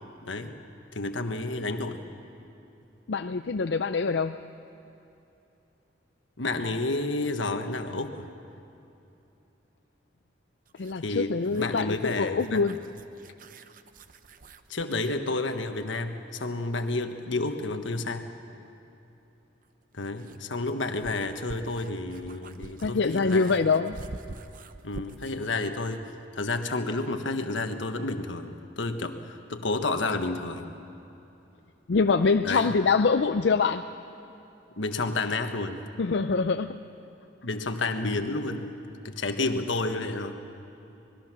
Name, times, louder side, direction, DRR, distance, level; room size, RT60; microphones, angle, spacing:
voice 1, 0.2-0.5 0.9-2.0 6.4-8.3 11.0-12.6 14.7-18.3 19.9-23.5 24.8-30.7 32.4-32.7 34.8-35.8 37.4-38.8 39.0-40.3, left 2 dB, 85° left, 7 dB, 1.4 m, -30 dB
voice 2, 3.1-4.4 10.8-12.8 22.8-24.0 31.9-33.9 36.0-36.8, left 4 dB, 65° left, 8 dB, 0.5 m, -25 dB
sound 1, 10.7-15.2 17.5-17.6 19.6-25.4, right 2 dB, 45° right, 0.7 m, -46 dB
25.5 x 20.5 x 6.1 m, 2.9 s
head